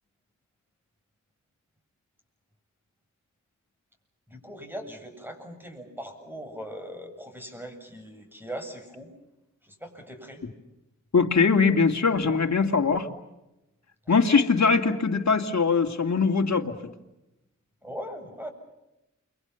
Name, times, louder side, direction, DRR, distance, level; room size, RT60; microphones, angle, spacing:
voice 1, 4.3-9.1 9.6-10.4 17.8-18.5, equal, 5° right, 5 dB, 7.7 m, -40 dB
voice 2, 11.1-13.1 14.1-16.7, left 5 dB, 60° left, 4 dB, 2.5 m, -22 dB
29.0 x 24.0 x 7.1 m, 0.94 s
cardioid pair, 45°, 31 cm